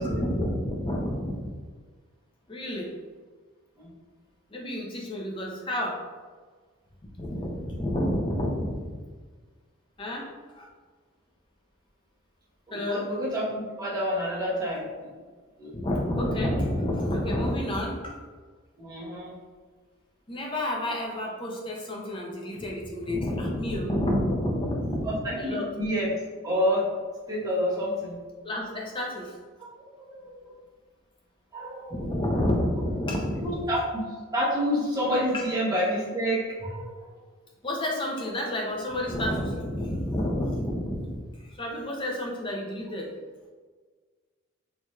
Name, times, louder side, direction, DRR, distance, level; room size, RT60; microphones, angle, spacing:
voice 1, 0.0-1.5 2.5-2.9 4.5-6.0 7.2-8.9 10.0-10.3 10.6-10.7 12.7-13.0 15.7-18.2 20.3-25.1 25.4-25.7 28.4-29.3 31.9-33.6 35.3-35.5 37.6-43.1, left 1 dB, 25° left, -1 dB, 0.6 m, -29 dB
voice 2, 12.7-15.1 15.6-15.7 18.8-19.3 25.0-26.1 26.4-26.9 27.3-28.2 30.0-30.5 31.5-32.2 33.4-34.0 34.3-37.1, equal, 15° right, -8 dB, 1.0 m, -28 dB
4.6 x 2.8 x 2.2 m, 1.5 s
head